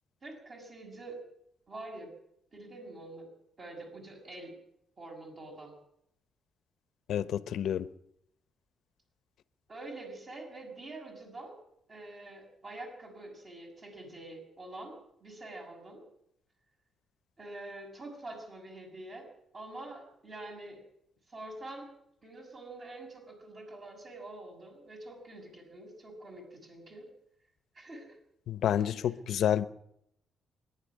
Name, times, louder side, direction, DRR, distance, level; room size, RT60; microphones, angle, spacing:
voice 1, 0.2-1.2 1.7-2.1 2.5-3.3 3.6-4.5 5.0-5.7 9.7-11.6 11.9-16.0 17.4-19.3 19.5-20.8 21.3-21.9 22.2-27.1 27.7-28.2 28.7-29.1, right 2 dB, 35° right, 6.4 m, -46 dB
voice 2, 7.1-7.9 28.5-29.6, left 10 dB, 70° left, 1.0 m, -29 dB
24.0 x 11.0 x 9.7 m
cardioid pair, 135°, 0 cm